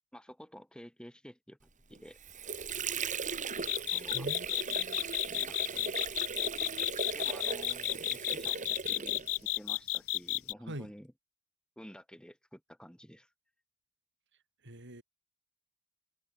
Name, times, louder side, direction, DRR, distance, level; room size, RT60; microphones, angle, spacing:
voice 1, 0.1-1.6 1.9-2.2 3.8-4.6 5.3-6.0 7.1-11.1 11.8-13.3, equal, 5° left, 4.9 m, -51 dB
Water / Sink (filling or washing), 1.9-9.6, right 5 dB, 35° right, 2.6 m, -38 dB
sound 1, 3.7-10.5, left 18 dB, 65° left, 0.7 m, -32 dB
voice 2, 4.1-5.0 10.7-10.9 14.6-15.0, right 1 dB, 55° right, 6.6 m, -44 dB
head